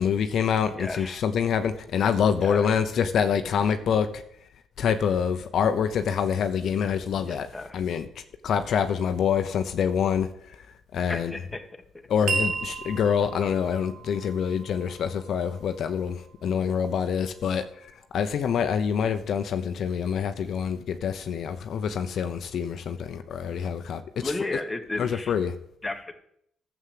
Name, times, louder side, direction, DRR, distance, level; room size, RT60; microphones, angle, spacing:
voice 1, 0.0-4.2 4.8-7.5 7.7-8.1 8.4-10.7 10.9-11.3 12.1-24.3 25.0-25.5, left 7 dB, 65° left, 0.8 m, -26 dB
voice 2, 0.7-1.2 2.4-2.8 7.2-7.8 11.0-11.6 24.2-25.3 25.8-26.1, left 2 dB, 15° left, 1.6 m, -34 dB
sound 1, 12.3-16.9, right 5 dB, 65° right, 1.7 m, -35 dB
11.5 x 7.3 x 7.7 m
cardioid pair, 90°, 0 cm